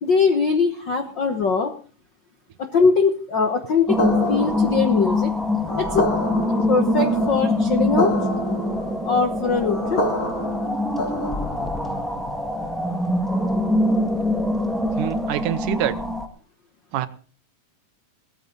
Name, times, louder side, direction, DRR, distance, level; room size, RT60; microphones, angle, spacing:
voice 1, 0.0-1.7 2.6-4.0 4.3-5.3 5.8-6.1 6.7-8.1 9.0-10.0, left 5 dB, 60° left, 6 dB, 1.1 m, -21 dB
sound 1, 3.9-16.3, left 1 dB, ahead, 0.3 m, -24 dB
sound 2, 4.0-11.8, equal, 40° left, 3.1 m, -28 dB
voice 2, 15.0-16.0 16.9-17.1, right 13 dB, 75° right, 13 dB, 2.3 m, -25 dB
17.5 x 14.0 x 4.0 m, 0.38 s
omnidirectional pair, 3.8 m